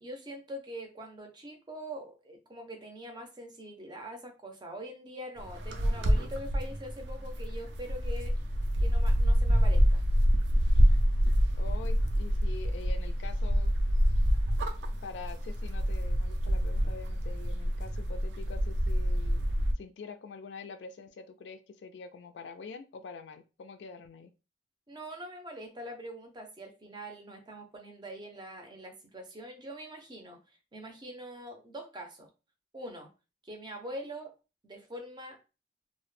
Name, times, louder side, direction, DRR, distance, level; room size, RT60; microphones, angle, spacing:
voice 1, 0.0-8.3 8.8-10.1 24.9-30.4 30.7-32.3 32.7-33.1 33.4-34.3 34.6-35.4, equal, 25° right, 4 dB, 0.5 m, -43 dB
sound 1, 5.4-19.7, equal, 80° right, 0.4 m, -27 dB
voice 2, 11.5-13.7 15.0-19.4 19.8-24.3, left 4 dB, 75° left, 9 dB, 0.3 m, -45 dB
2.0 x 2.0 x 3.1 m, 0.30 s
head